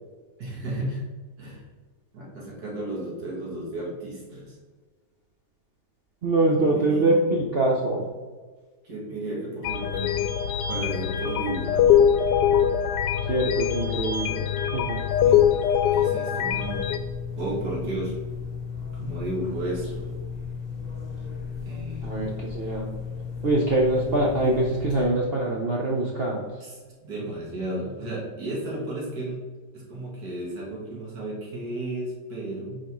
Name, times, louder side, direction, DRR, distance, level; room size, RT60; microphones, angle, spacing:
voice 1, 0.4-1.0 1.4-1.6 2.1-4.6 6.4-7.2 8.8-10.2 10.7-11.9 15.2-15.4 15.9-16.9 17.4-18.2 18.9-20.1 21.6-22.2 26.6-26.7 27.0-29.4 29.7-32.8, right 1 dB, 65° right, -3 dB, 2.3 m, -33 dB
voice 2, 6.2-8.1 13.2-15.0 22.0-22.9 23.4-26.5, right 2 dB, 50° right, -2 dB, 0.8 m, -24 dB
sound 1, 9.6-17.0, left 9 dB, 80° left, 1.2 m, -23 dB
sound 2, 16.5-25.0, left 5 dB, 30° left, 1.0 m, -35 dB
9.1 x 4.6 x 3.1 m, 1.4 s
omnidirectional pair, 1.8 m